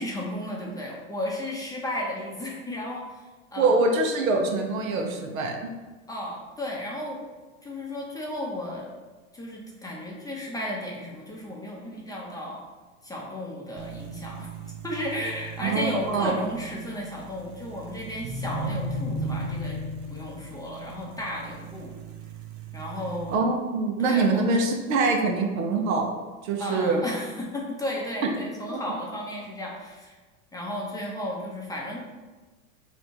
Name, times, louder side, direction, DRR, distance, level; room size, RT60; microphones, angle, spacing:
voice 1, 0.0-3.2 3.5-3.7 6.1-7.2 7.6-8.9 9.3-12.6 13.0-14.5 14.8-19.8 20.1-21.9 22.7-23.4 24.0-24.4 26.6-30.2 30.5-32.1, left 1 dB, 10° left, -3 dB, 0.7 m, -34 dB
voice 2, 3.6-5.7 15.6-16.3 23.3-26.1 26.4-27.0 28.7-28.8, right 3 dB, 75° right, 2 dB, 0.9 m, -24 dB
sound 1, 13.8-23.4, right 2 dB, 30° right, 0.4 m, -36 dB
3.4 x 2.8 x 4.4 m, 1.3 s
hypercardioid pair, 105°, 41 cm